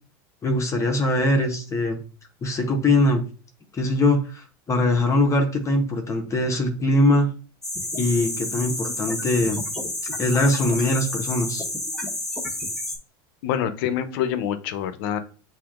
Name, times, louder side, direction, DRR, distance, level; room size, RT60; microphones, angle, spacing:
voice 1, 0.4-2.0 2.4-3.2 3.7-7.3 8.0-9.6 10.2-11.6, left 1 dB, 25° left, 3 dB, 0.8 m, -22 dB
sound 1, 7.6-13.0, left 1 dB, 5° left, 1.0 m, -30 dB
voice 2, 13.4-15.2, left 9 dB, 75° left, 10 dB, 0.7 m, -26 dB
7.0 x 2.7 x 2.4 m, 0.37 s
supercardioid pair, 115°, 12 cm